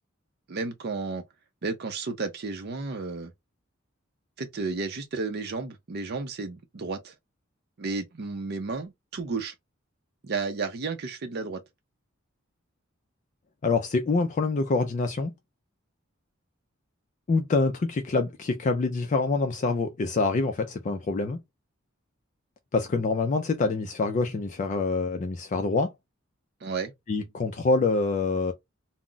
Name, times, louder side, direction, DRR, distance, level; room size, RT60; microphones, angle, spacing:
voice 1, 0.5-1.2 1.6-3.3 4.4-7.1 7.8-9.5 10.2-11.6 26.6-26.9, right 4 dB, 50° right, 0.5 m, -32 dB
voice 2, 13.6-15.3 17.3-21.4 22.7-25.9 27.1-28.5, left 3 dB, 35° left, 0.4 m, -26 dB
2.3 x 2.0 x 3.8 m
head